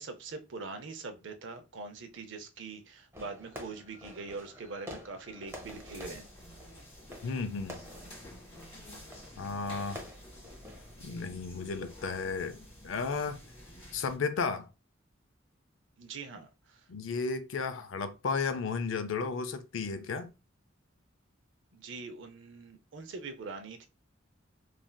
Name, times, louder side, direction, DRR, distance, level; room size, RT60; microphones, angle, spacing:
voice 1, 0.0-6.3 16.0-16.9 21.7-23.9, right 4 dB, 65° right, 0.5 m, -43 dB
Fireworks, 3.1-11.2, equal, 15° right, 0.7 m, -49 dB
sound 1, 5.5-14.2, left 1 dB, 30° left, 1.5 m, -50 dB
voice 2, 7.2-7.8 9.4-10.0 11.0-12.6 12.8-13.4 13.9-14.7 16.9-20.3, left 4 dB, 75° left, 0.4 m, -33 dB
3.2 x 2.6 x 2.2 m
head